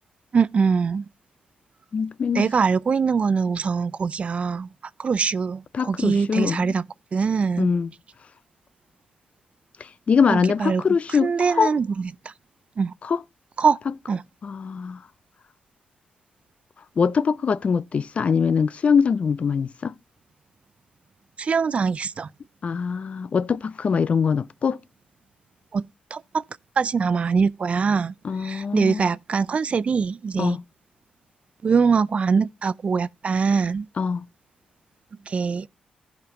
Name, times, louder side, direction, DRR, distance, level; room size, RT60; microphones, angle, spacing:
voice 1, 0.3-1.0 2.3-4.7 5.0-6.9 7.1-7.7 10.3-10.8 11.2-12.1 12.8-12.9 13.6-13.8 14.1-14.2 21.4-22.3 25.7-25.9 26.1-26.4 26.8-28.1 28.4-30.6 31.6-33.9 35.3-35.7, right 5 dB, 45° right, 0.4 m, -23 dB
voice 2, 1.9-2.5 5.7-6.7 7.6-7.9 9.8-11.7 13.0-13.2 14.4-15.0 17.0-20.0 22.6-24.8 28.2-29.1 30.4-30.6 34.0-34.2, left 6 dB, 50° left, 0.4 m, -23 dB
14.5 x 5.2 x 3.6 m
cardioid pair, 70°, 3 cm